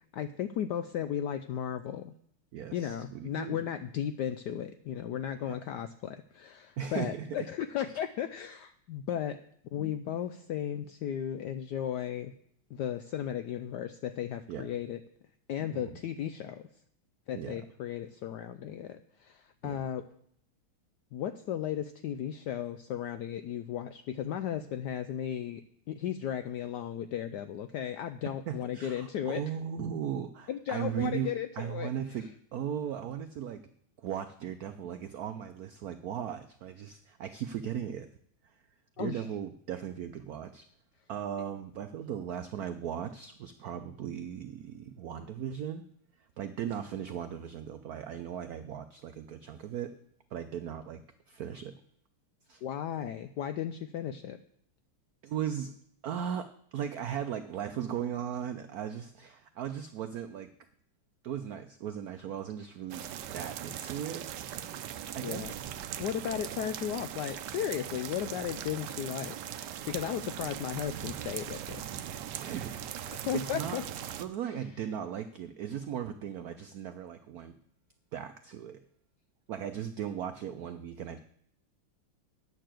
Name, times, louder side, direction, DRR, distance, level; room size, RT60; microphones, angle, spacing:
voice 1, 0.1-2.1 2.7-9.4 9.7-12.3 12.7-15.0 15.5-16.7 17.3-20.0 21.1-25.6 25.9-29.4 30.5-31.9 39.0-39.3 52.6-54.4 65.2-65.5 66.0-69.4 69.9-71.8 73.1-73.8, left 10 dB, 80° left, 11 dB, 0.9 m, -35 dB
voice 2, 2.5-3.6 5.4-5.6 6.8-7.5 14.5-14.7 15.7-16.0 17.3-17.6 19.6-19.8 28.5-33.6 34.0-38.1 39.0-40.7 41.1-45.8 46.4-49.9 50.3-51.8 52.5-52.6 55.2-55.7 56.0-60.5 61.2-63.0 63.3-64.2 65.1-65.6 66.1-66.4 72.3-72.8 73.1-73.8 74.2-77.5 78.1-78.8 79.5-81.2, right 9 dB, 90° right, 9 dB, 0.8 m, -37 dB
sound 1, 62.9-74.2, right 10 dB, 70° right, 1.1 m, -40 dB
9.4 x 6.7 x 7.6 m, 0.66 s
omnidirectional pair, 2.3 m